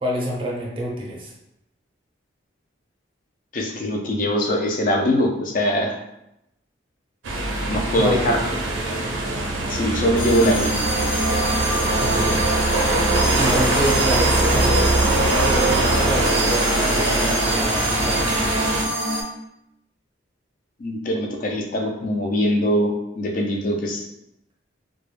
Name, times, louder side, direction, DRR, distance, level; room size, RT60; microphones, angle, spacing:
voice 1, 0.0-1.3 8.0-8.4 12.0-12.4 13.3-14.9 15.1-18.5, equal, 30° right, -3 dB, 0.4 m, -28 dB
voice 2, 3.5-6.0 7.7-8.4 9.7-10.8 20.8-24.0, equal, 45° left, 1 dB, 0.4 m, -22 dB
sound 1, 7.2-18.8, right 2 dB, 85° right, 0.4 m, -22 dB
sound 2, 10.1-19.2, right 1 dB, 80° left, 1.1 m, -26 dB
2.2 x 2.0 x 3.1 m, 0.84 s
head